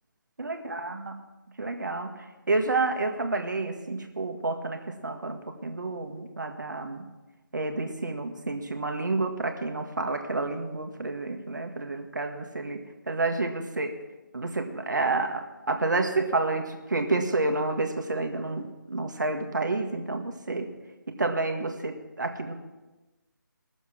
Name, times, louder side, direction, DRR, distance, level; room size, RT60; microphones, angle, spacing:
voice 1, 0.4-1.1 1.6-7.1 7.5-14.0 14.3-20.7 21.1-22.5, right 3 dB, 60° right, 4 dB, 1.6 m, -29 dB
19.0 x 7.2 x 5.9 m, 1.1 s
figure-of-eight pair, 150°, 11 cm